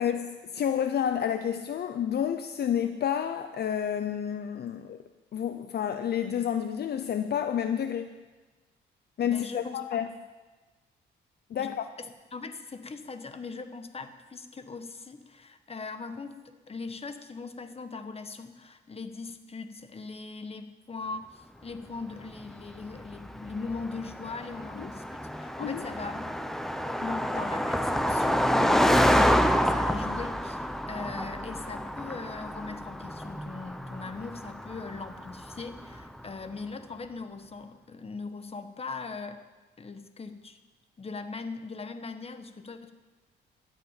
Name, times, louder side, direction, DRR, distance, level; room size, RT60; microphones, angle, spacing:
voice 1, 0.0-5.0 5.3-8.1 9.2-10.1 11.5-11.9 24.8-24.9 25.6-25.8, left 9 dB, 55° left, 9 dB, 0.7 m, -30 dB
voice 2, 9.2-10.0 11.6-16.4 16.7-26.3 27.0-39.4 39.8-40.6 41.0-42.9, left 4 dB, 30° left, 9 dB, 1.3 m, -40 dB
Car passing by, 22.4-36.1, equal, ahead, 0.9 m, -28 dB
13.0 x 8.4 x 9.1 m, 1.2 s
cardioid pair, 90°, 20 cm